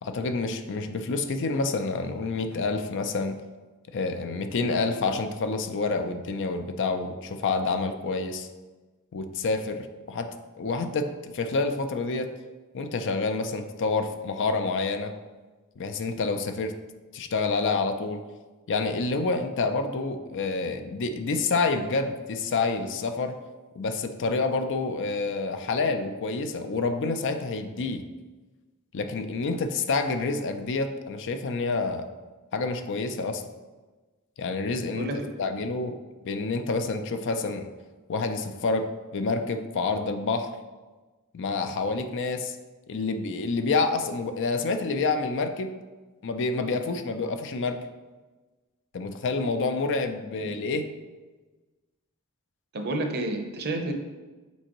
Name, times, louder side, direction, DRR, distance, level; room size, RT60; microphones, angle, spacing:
voice 1, 0.0-3.4 3.9-8.5 9.1-10.3 10.6-12.3 12.7-15.1 15.8-16.7 17.1-18.2 18.7-23.4 23.8-28.0 28.9-32.0 32.5-33.4 34.4-35.1 35.4-36.0 36.2-37.7 38.1-40.5 41.3-42.6 42.9-45.8 46.2-47.8 48.9-50.9, left 3 dB, 55° left, 8 dB, 0.5 m, -28 dB
voice 2, 34.9-35.5 50.4-50.5 52.7-53.9, right 1 dB, 45° right, 4 dB, 0.7 m, -30 dB
7.3 x 4.4 x 3.0 m, 1.2 s
head